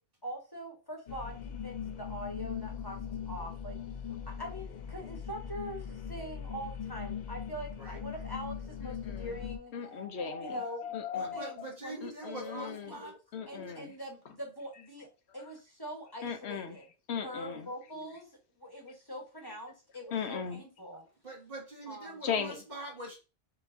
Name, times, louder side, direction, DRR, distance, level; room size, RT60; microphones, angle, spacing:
voice 1, 0.2-3.8 4.3-9.7 10.4-11.0 11.3-13.1 13.5-16.8 17.2-18.3 18.6-21.0 21.9-22.2, equal, 20° left, 1.1 m, -43 dB
sound 1, 1.1-9.6, left 7 dB, 55° left, 0.6 m, -40 dB
voice 2, 8.8-9.4 9.7-11.7 12.0-13.9 16.2-17.7 19.4-19.6 20.1-20.6 22.2-22.6, left 6 dB, 75° left, 1.0 m, -38 dB
voice 3, 11.1-13.1 13.7-13.8 21.2-23.2, right 2 dB, 55° right, 2.2 m, -44 dB
6.7 x 3.1 x 2.6 m
omnidirectional pair, 1.1 m